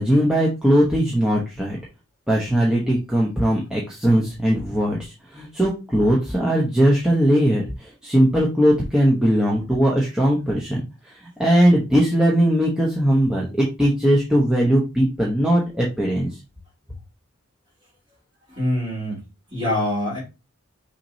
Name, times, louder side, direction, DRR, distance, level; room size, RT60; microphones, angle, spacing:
voice 1, 0.0-1.8 2.3-16.3, equal, 5° right, -4 dB, 0.8 m, -19 dB
voice 2, 18.6-19.2 19.5-20.2, left 1 dB, 25° right, -4 dB, 2.7 m, -24 dB
5.8 x 3.1 x 2.7 m, 0.28 s
head